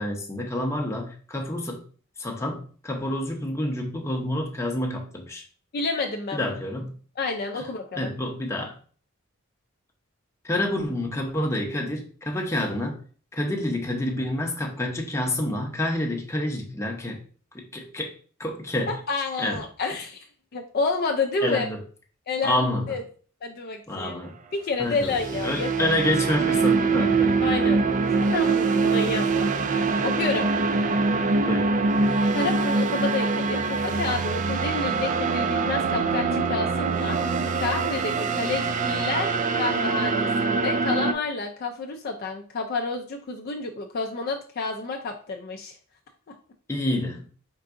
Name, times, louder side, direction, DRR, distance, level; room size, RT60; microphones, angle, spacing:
voice 1, 0.0-1.8 2.2-5.4 6.3-6.9 8.0-8.7 10.4-13.0 13.3-17.2 17.5-18.1 18.4-18.9 19.4-19.6 21.4-21.8 22.4-22.9 23.9-24.3 24.8-25.2 25.4-27.7 31.4-31.7 46.7-47.2, left 1 dB, 15° left, 1 dB, 0.7 m, -28 dB
voice 2, 5.7-6.5 7.2-8.1 18.9-20.3 20.5-21.7 22.3-23.0 23.4-24.1 24.5-25.9 27.4-27.8 28.3-30.5 32.3-45.7, left 3 dB, 45° left, 3 dB, 0.4 m, -29 dB
sound 1, 24.9-41.1, right 4 dB, 35° right, 0.3 m, -24 dB
4.6 x 3.8 x 2.5 m, 0.43 s
head